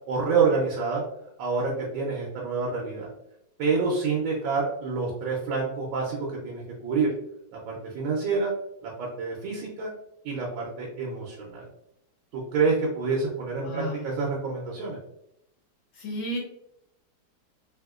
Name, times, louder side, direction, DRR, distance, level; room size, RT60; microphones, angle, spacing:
voice 1, 0.1-1.0 1.4-3.1 3.6-7.1 7.5-8.5 8.8-9.9 10.2-11.6 12.3-15.0, right 4 dB, 85° right, -2 dB, 1.4 m, -27 dB
voice 2, 13.6-14.1 16.0-16.4, equal, 80° left, -3 dB, 1.4 m, -32 dB
3.6 x 2.8 x 2.3 m, 0.81 s
omnidirectional pair, 2.1 m